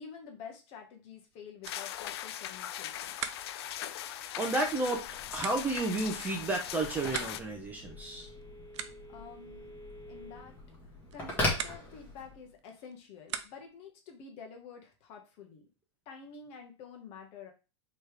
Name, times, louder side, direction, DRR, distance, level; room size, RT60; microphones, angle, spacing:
voice 1, 0.0-3.1 9.1-9.7 10.1-10.5 11.1-15.7 16.0-17.5, left 6 dB, 40° left, 3 dB, 1.2 m, -49 dB
sound 1, 1.1-13.9, right 8 dB, 70° right, 0.5 m, -46 dB
sound 2, 1.6-7.4, left 11 dB, 60° left, 0.4 m, -40 dB
voice 2, 4.1-8.3, right 2 dB, 10° right, 2 dB, 0.6 m, -32 dB
Telephone, 4.7-12.5, left 1 dB, 10° left, 1.6 m, -40 dB
4.4 x 3.2 x 3.3 m, 0.31 s
hypercardioid pair, 140°, 15 cm